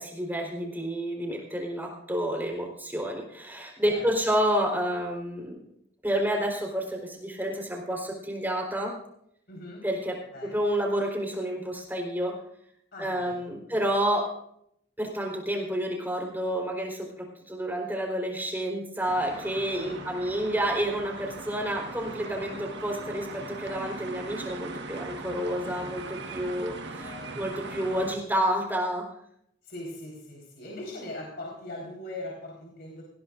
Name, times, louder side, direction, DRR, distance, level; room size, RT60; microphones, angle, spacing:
voice 1, 0.0-5.6 6.0-8.9 9.8-10.2 10.4-12.3 13.0-14.3 15.0-29.1, equal, 10° right, 0 dB, 4.1 m, -29 dB
voice 2, 9.5-9.8 10.3-10.6 12.9-13.8 19.8-20.0 25.6-27.4 27.7-28.1 29.6-33.0, left 1 dB, 60° left, -2 dB, 4.4 m, -42 dB
sound 1, 19.0-28.2, right 3 dB, 65° right, 1.6 m, -40 dB
19.5 x 16.0 x 2.6 m, 0.70 s
head